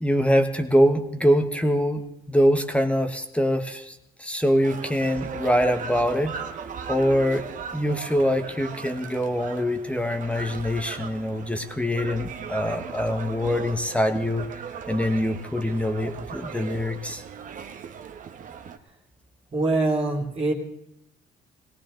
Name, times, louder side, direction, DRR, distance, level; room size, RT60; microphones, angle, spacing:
voice 1, 0.0-6.4 6.9-7.5 7.7-14.5 14.9-17.2, equal, 5° left, 7 dB, 1.2 m, -24 dB
sound 1, 4.6-18.8, right 6 dB, 50° right, 1.3 m, -38 dB
voice 2, 19.5-20.5, right 2 dB, 35° right, 0 dB, 2.8 m, -23 dB
19.5 x 18.0 x 3.9 m, 0.80 s
cardioid pair, 110°, 17 cm